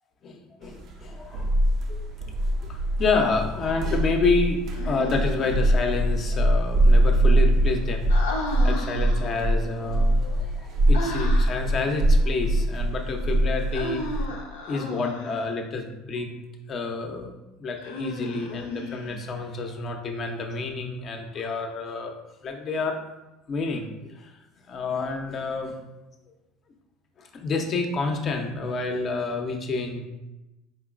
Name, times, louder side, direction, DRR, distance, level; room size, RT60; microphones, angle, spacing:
voice 1, 0.2-1.5 1.9-2.0 2.6-8.1 8.6-14.0 14.7-16.3 16.7-17.3 17.6-22.2 22.4-23.0 23.5-24.3 24.7-25.7 27.2-30.0, left 3 dB, 45° left, 4 dB, 0.6 m, -29 dB
sound 1, 0.8-14.2, right 1 dB, 55° right, 0.4 m, -23 dB
Human voice, 4.7-5.6 8.1-9.4 10.9-11.7 13.7-15.5 17.8-19.4, left 1 dB, 90° left, 0.5 m, -34 dB
4.3 x 3.0 x 2.4 m, 1.0 s
hypercardioid pair, 80°, 0 cm